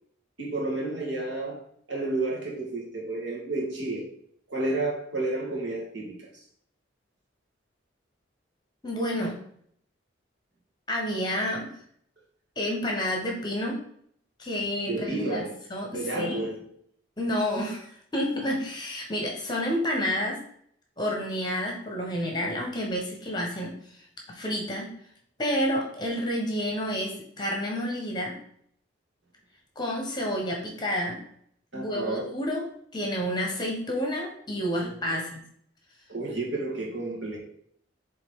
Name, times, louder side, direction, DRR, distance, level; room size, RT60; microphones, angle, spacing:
voice 1, 0.4-1.6 1.9-4.1 4.5-6.2 14.9-15.6 15.9-16.6 17.6-17.7 31.7-32.2 34.8-35.2 36.1-37.4, right 2 dB, 65° right, -2 dB, 1.8 m, -31 dB
voice 2, 8.8-9.4 10.9-11.7 12.6-13.8 14.4-15.4 15.7-16.5 17.2-20.4 21.0-24.9 25.4-28.4 29.7-31.2 31.7-32.7 32.9-35.4, equal, 20° left, 0 dB, 1.3 m, -30 dB
7.7 x 3.5 x 3.8 m, 0.65 s
head